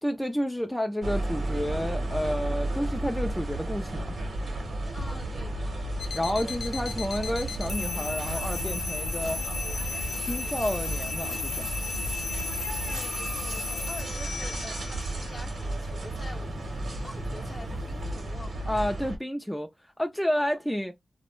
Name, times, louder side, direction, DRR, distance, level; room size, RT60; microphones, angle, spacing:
voice 1, 0.0-4.2 6.1-9.4 10.2-11.7 18.7-19.7 20.0-20.9, equal, 5° left, 0.4 m, -30 dB
sound 1, 1.0-19.2, right 1 dB, 80° right, 0.8 m, -33 dB
voice 2, 4.9-5.8 12.9-18.7 20.3-20.6, left 2 dB, 40° left, 0.6 m, -46 dB
sound 2, 6.0-18.0, left 4 dB, 85° left, 0.3 m, -36 dB
2.2 x 2.0 x 3.0 m
cardioid pair, 65°, 0 cm